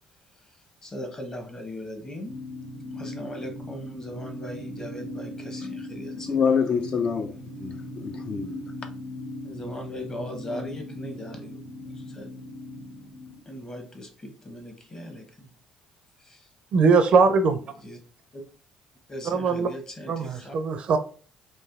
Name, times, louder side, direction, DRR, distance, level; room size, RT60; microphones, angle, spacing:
voice 1, 0.8-2.3 2.9-6.4 9.4-11.6 12.0-12.3 13.5-15.5 16.3-16.4 17.8-18.0 19.1-20.5, left 1 dB, 30° left, 1.0 m, -38 dB
sound 1, 2.3-13.4, left 1 dB, 85° left, 0.8 m, -39 dB
voice 2, 6.3-7.3 7.6-8.7, left 6 dB, 45° left, 0.4 m, -26 dB
voice 3, 16.7-17.6 19.2-19.7 20.1-21.0, right 4 dB, 50° right, 0.4 m, -21 dB
3.1 x 2.5 x 2.4 m
hypercardioid pair, 55°, 2 cm